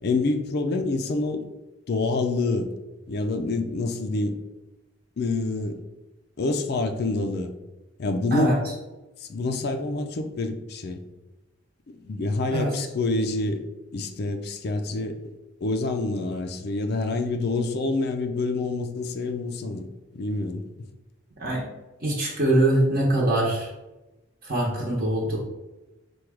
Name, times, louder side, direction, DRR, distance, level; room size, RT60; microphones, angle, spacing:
voice 1, 0.0-1.4 1.9-2.7 3.1-4.4 5.2-5.8 6.4-7.5 8.0-8.6 9.2-11.0 12.0-13.7 13.9-15.2 15.6-20.6, left 2 dB, 50° left, 7 dB, 0.4 m, -27 dB
voice 2, 22.0-23.7 24.4-25.4, right 1 dB, 45° right, -4 dB, 0.9 m, -23 dB
4.5 x 2.3 x 4.8 m, 1.0 s
head